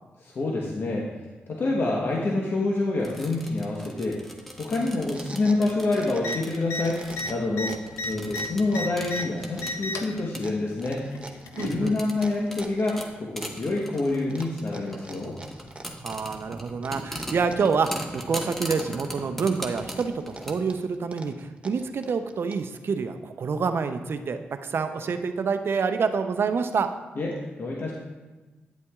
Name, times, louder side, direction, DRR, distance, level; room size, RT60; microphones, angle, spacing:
voice 1, 0.2-1.1 1.5-4.2 4.6-7.0 7.3-11.0 11.6-15.4 27.2-27.9, left 2 dB, 55° left, -2 dB, 1.1 m, -27 dB
sound 1, 3.0-20.5, equal, 5° left, 1.2 m, -40 dB
sound 2, 4.8-6.5 6.8-7.9 8.3-12.9 13.4-14.0 14.3-16.4 16.8-18.1 18.4-19.4 19.8-22.8, right 2 dB, 25° right, 0.9 m, -45 dB
sound 3, 6.2-6.4 6.6-6.8 7.1-9.2 9.6-10.1 11.1-11.8 12.8-12.9, left 2 dB, 85° left, 0.6 m, -32 dB
voice 2, 11.6-12.0 16.0-26.9, right 5 dB, 60° right, 8 dB, 0.6 m, -27 dB
9.3 x 8.4 x 2.4 m, 1.2 s
cardioid pair, 55°, 4 cm